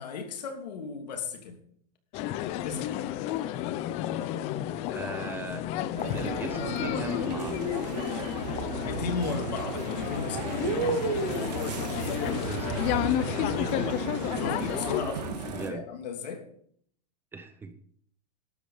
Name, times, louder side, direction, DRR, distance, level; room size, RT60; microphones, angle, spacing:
voice 1, 0.0-1.6 2.6-2.9 8.8-10.7 14.4-16.4, left 5 dB, 80° left, 4 dB, 2.9 m, -35 dB
sound 1, 2.1-15.0, left 13 dB, 30° left, 0.6 m, -31 dB
voice 2, 4.9-5.6 6.1-7.8 12.3-13.7 15.5-15.8 17.3-17.7, right 4 dB, 10° right, 9 dB, 0.8 m, -39 dB
sound 2, 6.0-15.7, right 5 dB, 80° right, 2.2 m, -35 dB
sound 3, 8.3-15.3, right 6 dB, 55° right, 3.3 m, -39 dB
12.0 x 8.5 x 5.5 m, 0.62 s
supercardioid pair, 160°, 21 cm